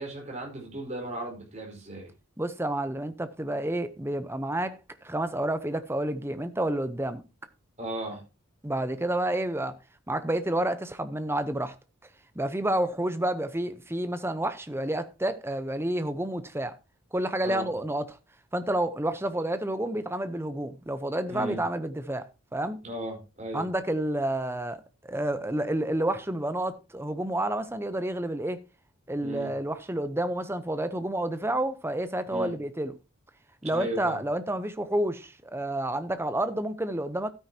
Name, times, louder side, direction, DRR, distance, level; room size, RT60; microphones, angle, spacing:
voice 1, 0.0-2.1 7.8-8.2 17.4-17.6 21.3-21.6 22.8-23.6 29.2-29.5 32.3-32.5 33.7-34.2, right 1 dB, 30° right, 4.6 m, -36 dB
voice 2, 2.4-7.2 8.6-9.8 10.1-11.7 12.3-16.7 17.1-18.0 18.5-22.3 22.5-22.8 23.5-28.6 29.1-32.9 33.6-37.3, right 1 dB, 10° right, 0.8 m, -29 dB
13.0 x 9.2 x 2.9 m
head